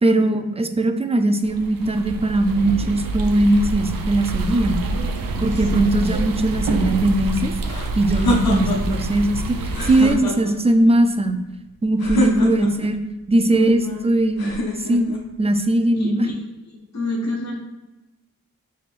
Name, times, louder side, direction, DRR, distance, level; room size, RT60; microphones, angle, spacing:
voice 1, 0.0-4.8 5.4-7.5 8.0-11.4 11.8-13.0 13.3-15.1 15.4-16.3, right 1 dB, 20° right, 6 dB, 0.4 m, -19 dB
sound 1, 1.4-10.2, right 2 dB, 70° right, 0.5 m, -26 dB
voice 2, 5.3-6.1 12.4-12.5 13.5-14.0 15.9-16.4 16.7-17.6, left 2 dB, 50° left, 0 dB, 0.9 m, -29 dB
sound 2, 7.6-9.0 9.7-10.7 12.0-12.9 14.4-15.2, left 2 dB, 90° left, 0.7 m, -25 dB
4.8 x 3.5 x 2.5 m, 1.0 s
cardioid pair, 45°, 36 cm